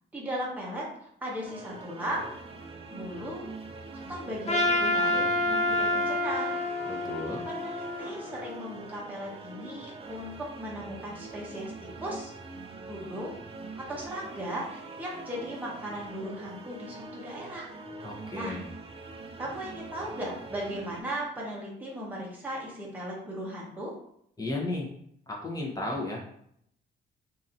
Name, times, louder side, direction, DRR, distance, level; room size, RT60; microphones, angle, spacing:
voice 1, 0.1-2.3 2.9-3.5 3.9-6.5 7.4-10.3 10.6-11.7 12.0-12.3 12.9-13.4 13.9-17.7 18.3-18.6 19.4-23.9, equal, 10° right, -5 dB, 0.9 m, -37 dB
sound 1, 1.4-21.0, right 3 dB, 30° right, 0.5 m, -44 dB
Trumpet, 4.5-8.8, left 1 dB, 35° left, 0.5 m, -28 dB
voice 2, 6.9-7.4 18.0-18.7 24.4-24.9 25.3-26.3, left 2 dB, 20° left, -2 dB, 0.9 m, -34 dB
2.9 x 2.7 x 2.6 m, 0.69 s
cardioid pair, 90°, 20 cm